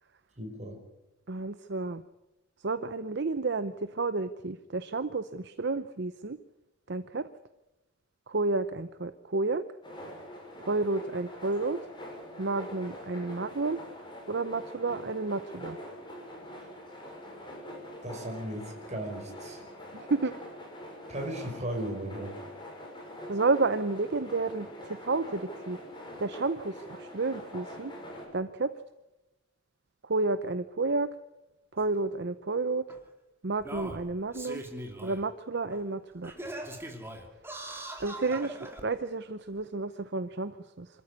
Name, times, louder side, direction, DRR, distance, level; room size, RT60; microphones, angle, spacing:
voice 1, 0.4-0.8 16.5-16.6 18.0-19.6 21.1-22.4, right 1 dB, 35° right, 3 dB, 5.4 m, -36 dB
voice 2, 1.3-2.0 2.6-6.4 6.9-7.3 8.3-9.6 10.6-11.8 12.4-13.8 14.3-15.8 19.9-20.3 23.3-25.8 26.2-27.9 28.3-28.7 30.0-31.1 31.7-32.8 33.4-34.6 35.0-36.3 38.0-40.9, right 3 dB, 55° right, 12 dB, 0.8 m, -31 dB
sound 1, 9.8-28.3, equal, 25° left, 6.2 m, -44 dB
Singing, 31.8-31.9 32.9-33.0 33.6-35.2 35.7-35.8 36.2-38.8 39.6-39.7, right 1 dB, 10° right, 2.8 m, -41 dB
26.5 x 14.0 x 9.6 m, 1.0 s
head